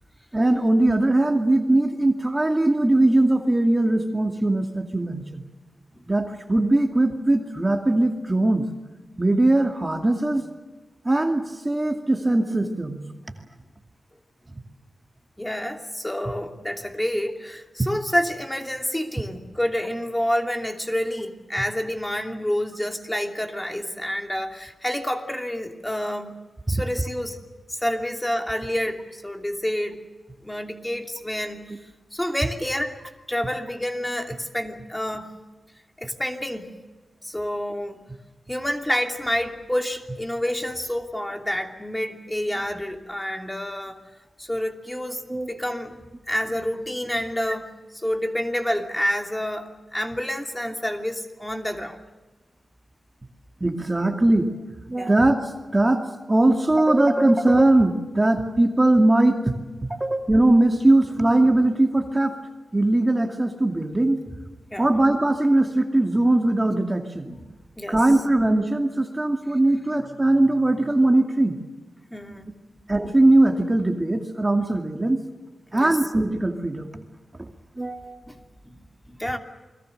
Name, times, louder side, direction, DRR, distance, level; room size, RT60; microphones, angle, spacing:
voice 1, 0.3-5.4 6.1-8.7 9.2-10.4 11.0-13.0 26.7-26.8 45.3-45.5 53.6-55.4 55.7-59.7 60.0-62.4 62.7-64.2 64.8-67.3 67.9-71.6 72.9-75.2 75.7-77.0 77.4-77.5 77.8-78.2, right 2 dB, 20° right, 4 dB, 2.3 m, -20 dB
voice 2, 15.4-26.3 26.7-27.4 27.7-30.0 30.4-31.7 32.1-33.0 33.3-35.4 36.0-36.8 37.2-38.0 38.5-44.0 44.4-47.7 48.0-52.0 55.0-55.1 64.7-64.9 67.2-67.5 67.8-68.0 72.1-72.8 75.7-76.0 78.3-78.4 78.6-79.4, equal, 10° left, 4 dB, 2.8 m, -28 dB
29.5 x 22.0 x 6.7 m, 1.2 s
wide cardioid pair, 105°, 0 cm